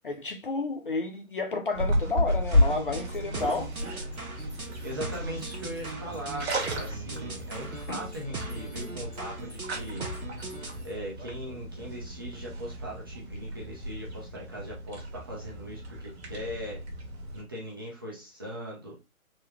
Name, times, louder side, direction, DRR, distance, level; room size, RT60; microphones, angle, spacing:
voice 1, 0.0-3.7 7.9-8.0, left 3 dB, 40° left, 0.4 m, -31 dB
sound 1, 1.7-17.4, left 1 dB, 50° right, 1.3 m, -33 dB
sound 2, 2.5-10.8, right 3 dB, 85° right, 1.0 m, -40 dB
sound 3, 3.1-11.1, equal, 5° left, 0.9 m, -52 dB
voice 2, 4.5-10.1 10.8-16.8 17.3-19.0, equal, 15° right, 0.5 m, -40 dB
3.9 x 2.1 x 3.1 m
figure-of-eight pair, 135°, 42 cm